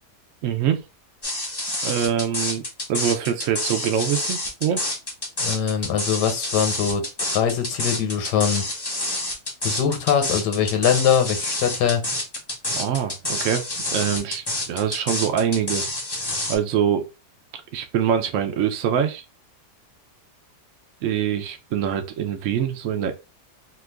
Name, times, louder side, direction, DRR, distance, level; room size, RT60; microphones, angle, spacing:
voice 1, 0.4-0.8 1.8-2.6 2.9-4.8 12.8-13.6 13.9-15.9 16.5-17.1 17.7-19.2 21.0-23.1, right 9 dB, 70° right, 0.7 m, -24 dB
sound 1, 1.2-16.6, left 1 dB, 25° left, 0.6 m, -28 dB
voice 2, 5.4-8.6 9.6-12.0, left 8 dB, 80° left, 1.4 m, -22 dB
2.9 x 2.4 x 3.3 m
omnidirectional pair, 1.8 m